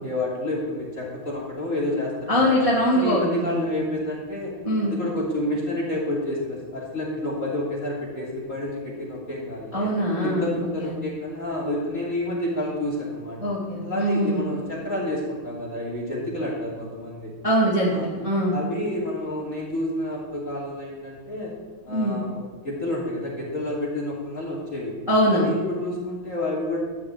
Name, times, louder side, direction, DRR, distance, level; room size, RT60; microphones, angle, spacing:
voice 1, 0.0-2.6 2.9-4.5 4.8-9.9 10.2-13.5 13.8-17.3 17.8-18.1 18.5-21.5 21.8-25.0 25.3-26.8, left 1 dB, 25° left, -4 dB, 2.9 m, -29 dB
voice 2, 2.3-3.7 4.6-4.9 9.7-10.5 10.8-10.9 13.4-14.4 17.4-18.5 21.9-22.2 25.1-25.5, equal, 10° right, -5 dB, 2.1 m, -22 dB
13.5 x 6.0 x 8.3 m, 1.3 s
omnidirectional pair, 3.6 m